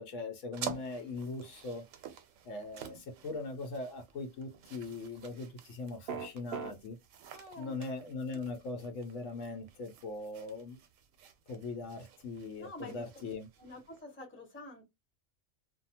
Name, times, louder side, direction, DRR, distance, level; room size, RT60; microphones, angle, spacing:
voice 1, 0.0-1.9 2.4-7.0 7.6-10.8 11.5-13.5, left 3 dB, 80° left, 1.1 m, -40 dB
sound 1, 0.5-14.0, right 8 dB, 80° right, 1.0 m, -50 dB
sound 2, 6.1-6.7, right 6 dB, 60° right, 0.7 m, -37 dB
voice 2, 7.3-7.8 12.6-13.0 13.6-14.8, left 1 dB, 10° left, 1.0 m, -47 dB
2.6 x 2.3 x 2.7 m
omnidirectional pair, 1.3 m